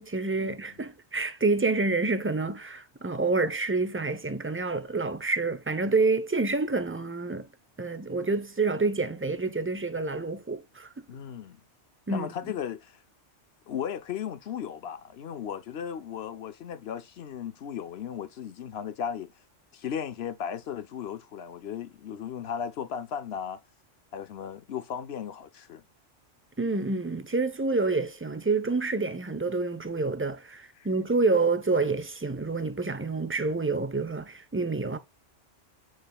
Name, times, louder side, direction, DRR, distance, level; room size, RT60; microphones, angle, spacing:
voice 1, 0.0-7.5 7.8-11.0 12.1-12.3 26.6-35.0, right 3 dB, 15° right, 0.7 m, -28 dB
voice 2, 11.1-11.6 12.1-13.0 13.7-19.3 19.7-23.6 24.1-25.8 30.7-30.9, left 8 dB, 60° left, 0.9 m, -36 dB
8.8 x 6.1 x 2.4 m
omnidirectional pair, 1.2 m